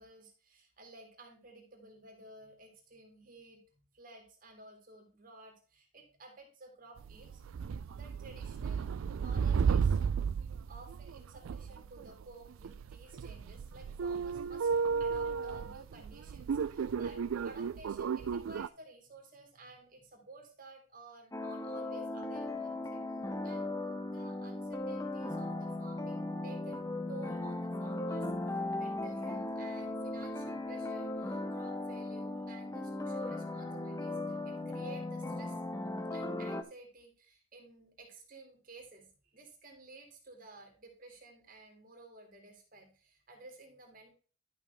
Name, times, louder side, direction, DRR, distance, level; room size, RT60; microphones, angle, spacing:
voice 1, 0.0-3.6 3.9-7.5 7.9-8.9 9.2-10.0 10.7-23.0 23.4-23.7 24.1-35.6 36.1-44.1, right 2 dB, 40° right, 2 dB, 2.0 m, -54 dB
sound 1, 7.0-18.7, right 6 dB, 80° right, 0.4 m, -33 dB
sound 2, 21.3-36.6, left 2 dB, 15° left, 0.6 m, -37 dB
11.5 x 5.6 x 3.4 m, 0.37 s
head